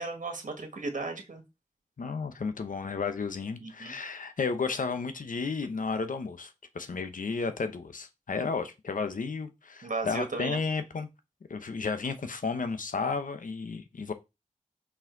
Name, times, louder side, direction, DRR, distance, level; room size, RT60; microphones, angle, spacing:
voice 1, 0.0-1.4 3.6-3.9 9.8-10.6, right 3 dB, 75° right, 1.7 m, -35 dB
voice 2, 2.0-11.1 11.5-14.1, left 4 dB, 90° left, 0.9 m, -33 dB
5.6 x 5.1 x 3.9 m
wide cardioid pair, 90°, 13 cm